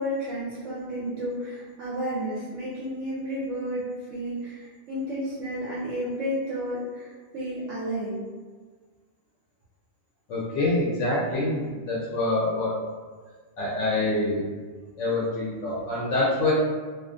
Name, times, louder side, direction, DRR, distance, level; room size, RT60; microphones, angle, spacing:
voice 1, 0.0-8.2, equal, 80° right, -7 dB, 0.9 m, -32 dB
voice 2, 10.3-12.7 13.6-14.4 15.0-16.5, left 2 dB, 80° left, -6 dB, 0.9 m, -26 dB
2.4 x 2.4 x 2.4 m, 1.5 s
omnidirectional pair, 1.3 m